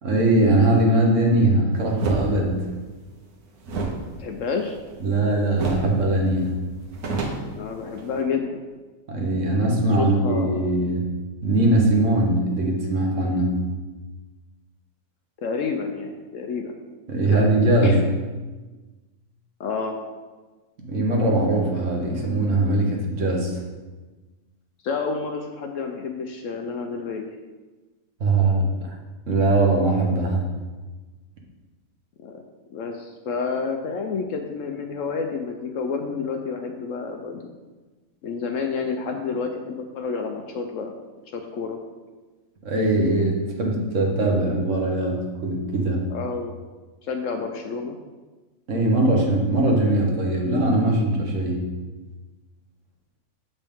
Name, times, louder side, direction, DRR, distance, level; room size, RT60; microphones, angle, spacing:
voice 1, 0.0-2.7 5.0-6.6 9.1-11.1 11.4-13.6 17.1-18.0 20.8-23.6 28.2-28.7 29.3-30.4 42.6-46.1 48.7-51.7, right 2 dB, 55° right, 0 dB, 1.4 m, -21 dB
sound 1, 2.0-2.3 3.6-5.2 5.6-5.9 6.2-6.3 6.7-8.2, right 3 dB, 75° right, 1.4 m, -29 dB
voice 2, 4.0-4.7 7.5-8.6 10.0-10.8 15.4-16.8 17.3-17.5 17.8-18.0 19.6-20.0 24.8-27.2 32.2-32.4 32.7-37.5 38.2-41.0 41.3-41.8 46.1-46.6 47.0-48.0, left 5 dB, 65° left, 4 dB, 0.9 m, -29 dB
7.2 x 5.4 x 3.6 m, 1.3 s
omnidirectional pair, 1.6 m